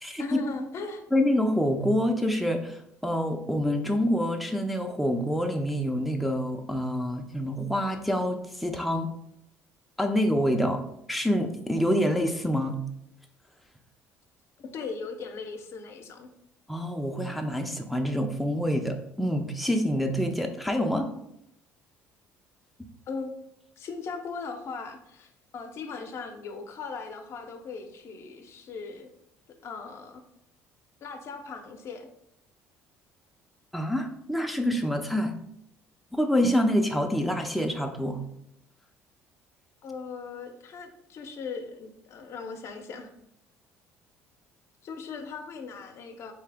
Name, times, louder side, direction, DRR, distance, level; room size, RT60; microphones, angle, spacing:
voice 1, 0.2-1.0 14.6-16.3 23.1-23.3 23.8-29.1 29.6-30.2 31.0-32.1 39.8-43.1 44.8-46.3, left 4 dB, 55° left, 5 dB, 0.6 m, -38 dB
voice 2, 1.1-9.1 10.0-10.8 11.1-12.8 16.7-21.1 33.7-35.4 36.1-38.2, equal, ahead, 3 dB, 0.4 m, -26 dB
3.2 x 2.8 x 3.4 m, 0.77 s
supercardioid pair, 75°, 6 cm